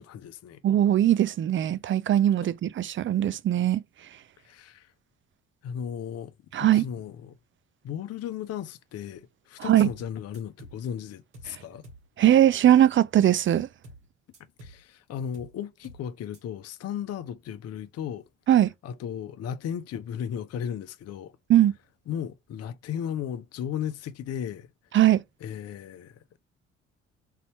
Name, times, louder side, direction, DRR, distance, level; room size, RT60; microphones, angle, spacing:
voice 1, 0.0-0.6 4.4-4.9 5.6-6.3 6.6-7.4 7.8-11.9 14.6-18.3 18.8-21.4 22.1-24.7 25.4-26.4, left 9 dB, 45° left, 0.8 m, -35 dB
voice 2, 0.6-3.8 6.5-6.9 9.6-9.9 11.5-11.6 12.2-13.7 18.5-18.7 21.5-21.7 24.9-25.2, right 11 dB, 35° right, 0.6 m, -20 dB
sound 1, 9.8-10.1 10.3-10.8 11.3-11.6 11.8-12.1 13.8-14.1 14.3-14.8 15.3-15.6 15.8-16.1 16.3-16.4, equal, 85° right, 1.8 m, -48 dB
5.6 x 4.1 x 5.4 m
figure-of-eight pair, 45°, 35 cm